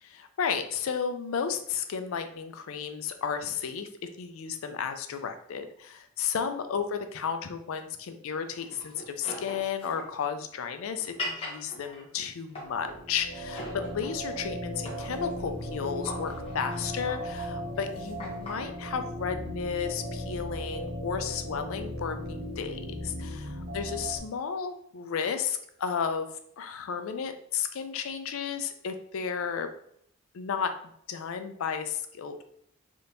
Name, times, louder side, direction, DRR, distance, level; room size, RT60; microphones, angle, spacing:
voice 1, 0.0-3.9 4.2-13.6 13.9-26.3 26.6-29.7 30.3-30.7 31.1-32.5, left 6 dB, 80° left, 8 dB, 0.4 m, -33 dB
sound 1, 8.6-13.0 13.5-14.4 14.7-18.7, left 1 dB, 25° left, 0.8 m, -41 dB
sound 2, 12.7-24.2, equal, 40° right, 1.3 m, -37 dB
3.5 x 2.8 x 2.6 m, 0.68 s
head